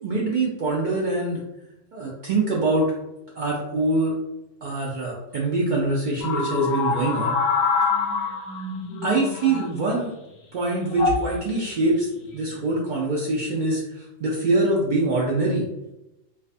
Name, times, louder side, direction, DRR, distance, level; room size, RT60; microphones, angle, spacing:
voice 1, 0.0-1.4 1.9-2.9 3.4-4.1 4.6-7.4 7.7-7.8 9.0-10.1 10.5-12.1 12.3-15.7, right 2 dB, 70° right, -4 dB, 0.4 m, -24 dB
sound 1, 6.2-10.0 10.9-11.3 12.2-12.6, left 4 dB, 60° left, 0.8 m, -25 dB
2.4 x 2.3 x 2.5 m, 0.92 s
omnidirectional pair, 1.3 m